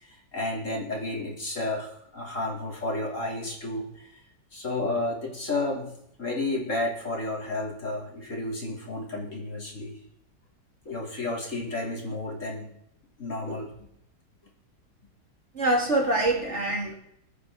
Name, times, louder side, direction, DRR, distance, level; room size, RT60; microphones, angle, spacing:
voice 1, 0.0-4.2 4.5-5.9 6.2-10.0 10.9-12.7 13.2-13.7, left 2 dB, 45° left, -1 dB, 3.9 m, -32 dB
voice 2, 15.5-16.9, right 2 dB, 40° right, 1 dB, 2.6 m, -24 dB
22.5 x 9.5 x 4.0 m, 0.73 s
omnidirectional pair, 1.9 m